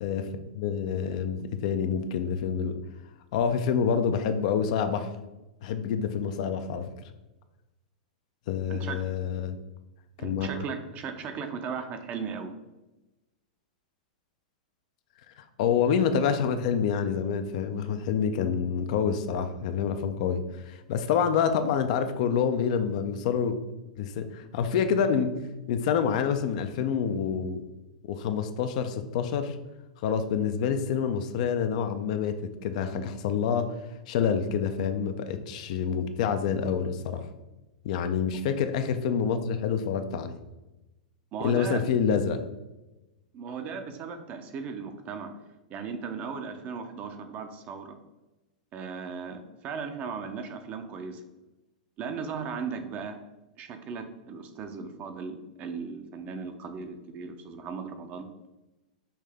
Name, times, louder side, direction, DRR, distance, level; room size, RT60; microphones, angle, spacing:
voice 1, 0.0-2.8 3.3-5.1 5.6-6.9 8.5-9.6 10.2-10.6 15.4-23.6 24.0-25.4 25.7-27.6 28.1-29.6 30.0-33.7 34.1-37.3 37.8-40.4 41.4-42.4, left 7 dB, 60° left, 9 dB, 0.4 m, -27 dB
voice 2, 8.7-9.1 10.2-12.5 41.3-41.9 43.3-45.3 45.7-48.0 48.7-51.2 52.0-53.2 53.6-58.3, right 5 dB, 35° right, 7 dB, 0.6 m, -37 dB
5.6 x 2.7 x 3.4 m, 1.0 s
hypercardioid pair, 110°, 4 cm